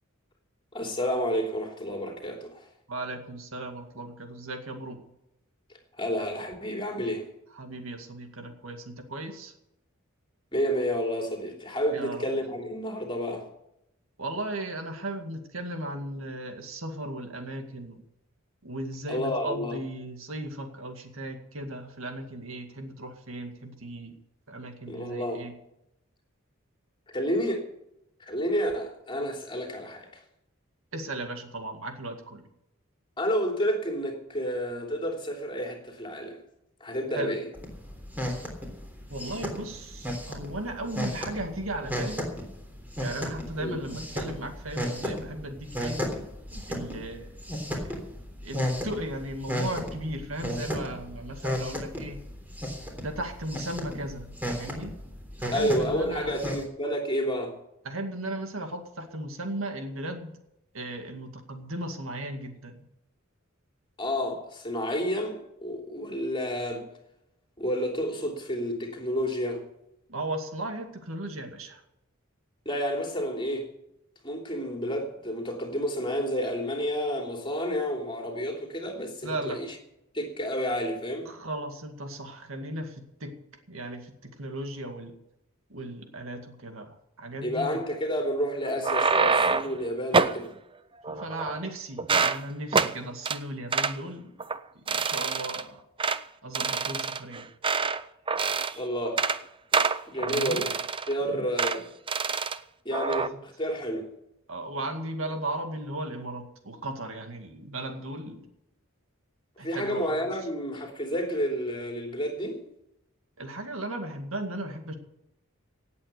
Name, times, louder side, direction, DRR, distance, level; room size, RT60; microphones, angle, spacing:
voice 1, 0.7-2.7 6.0-7.3 10.5-13.4 19.1-19.8 24.9-25.4 27.1-27.7 28.2-30.1 33.2-36.4 36.8-37.5 43.6-43.8 55.5-57.6 64.0-66.8 67.6-69.6 72.6-73.7 74.2-79.7 80.1-81.3 87.4-90.5 98.7-99.2 100.1-100.7 101.1-101.8 102.8-104.1 109.6-112.6, equal, 25° left, 3.0 m, -30 dB
voice 2, 2.9-5.0 7.5-9.5 11.9-12.5 14.2-18.0 18.6-24.2 24.5-25.5 30.9-32.4 37.1-37.4 39.1-42.3 43.0-46.0 46.7-47.4 47.8-48.0 48.4-52.2 53.0-54.9 55.4-56.4 57.8-60.4 60.7-62.8 70.1-71.8 79.2-79.6 81.3-83.4 83.7-85.1 85.7-87.8 91.1-94.3 94.7-95.8 96.4-97.5 100.2-100.7 101.2-101.5 103.2-103.4 104.5-108.5 109.6-110.2 113.4-114.9, right 1 dB, 70° right, 2.2 m, -36 dB
sound 1, 37.5-56.6, equal, 10° right, 3.4 m, -35 dB
sound 2, 88.6-89.8 90.1-90.4 91.0-91.7 92.0-92.4 92.7-92.9 93.3-93.4 93.7-94.0 94.4-94.6 94.9-95.6 96.0-96.2 96.5-98.0 98.3-98.8 99.1-99.4 99.7-101.1 101.6-101.8 102.1-102.6 102.9-103.3, right 4 dB, 25° right, 0.6 m, -26 dB
17.5 x 8.4 x 6.7 m
head